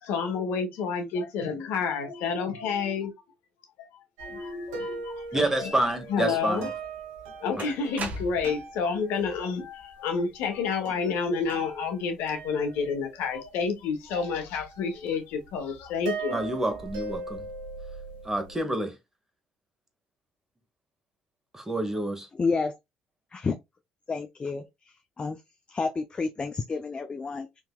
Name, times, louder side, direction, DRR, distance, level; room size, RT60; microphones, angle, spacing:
voice 1, 0.0-3.1 3.8-3.9 4.2-5.8 6.1-6.7 7.4-16.4, left 5 dB, 80° left, 0.9 m, -29 dB
sound 1, 4.2-9.4 10.5-10.6 10.8-13.6 14.1-15.0 15.3-18.6, right 4 dB, 90° right, 0.9 m, -40 dB
voice 2, 5.3-6.7 7.5-7.6 16.3-17.5 18.2-19.0 21.5-22.3, right 1 dB, 10° right, 1.1 m, -28 dB
sound 2, 6.6-6.7 7.6-8.7, right 2 dB, 50° right, 1.1 m, -36 dB
voice 3, 22.3-22.8 23.3-23.6 24.1-24.6 25.2-25.4 25.7-27.6, left 4 dB, 30° left, 0.4 m, -29 dB
3.6 x 2.8 x 2.2 m
supercardioid pair, 75°, 3 cm